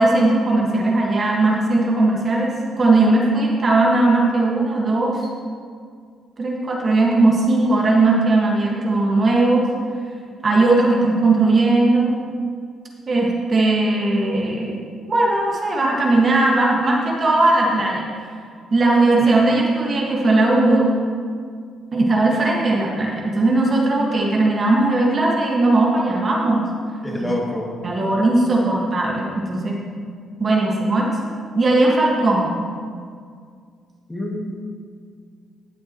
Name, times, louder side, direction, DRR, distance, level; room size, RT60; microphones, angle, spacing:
voice 1, 0.0-5.2 6.4-9.7 10.4-12.1 13.1-14.8 15.1-18.1 18.7-20.9 21.9-26.7 27.2-27.4 27.8-29.8 30.4-31.1 31.5-32.5, right 2 dB, 40° right, -2 dB, 1.7 m, -18 dB
voice 2, 27.0-27.7 34.1-34.6, left 1 dB, 15° left, -2 dB, 2.3 m, -27 dB
17.0 x 7.2 x 3.1 m, 2.1 s
cardioid pair, 90°, 0 cm